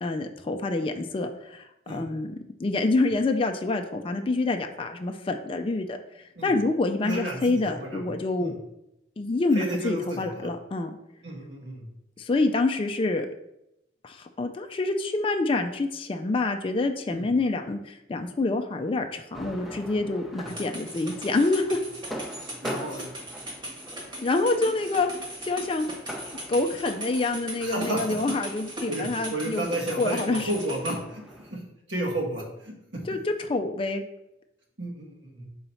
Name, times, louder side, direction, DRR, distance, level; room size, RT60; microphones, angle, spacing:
voice 1, 0.0-2.3 2.6-6.0 6.4-8.6 9.2-10.9 12.2-13.3 14.0-21.8 24.2-25.1 25.4-25.9 26.5-29.7 30.0-30.5 33.1-34.0, left 2 dB, 30° left, 5 dB, 0.4 m, -27 dB
voice 2, 7.0-8.1 8.4-8.5 9.5-10.5 11.2-11.9 17.1-17.3 20.4-20.5 22.6-23.1 27.6-28.3 28.9-31.6 31.9-33.0 34.8-35.5, right 1 dB, 75° right, -2 dB, 1.6 m, -32 dB
sound 1, 19.3-31.5, equal, ahead, 0.7 m, -43 dB
sound 2, 20.5-31.0, right 1 dB, 25° right, 1.4 m, -39 dB
4.4 x 3.9 x 5.5 m, 0.85 s
head